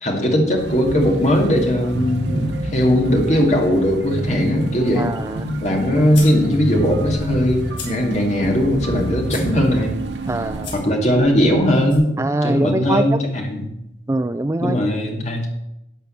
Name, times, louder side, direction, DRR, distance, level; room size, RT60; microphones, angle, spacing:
voice 1, 0.0-5.1 5.6-9.9 10.7-12.1 12.4-13.6 14.6-15.5, equal, 40° left, 1 dB, 2.3 m, -19 dB
sound 1, 0.6-10.7, right 1 dB, 75° right, 1.2 m, -28 dB
voice 2, 5.0-5.5 5.9-6.0 10.3-10.7 12.2-13.2 14.1-14.8, right 2 dB, 15° right, 11 dB, 0.3 m, -23 dB
sound 2, 5.3-12.0, left 3 dB, 80° left, 4.8 m, -39 dB
12.0 x 5.6 x 9.1 m, 0.86 s
head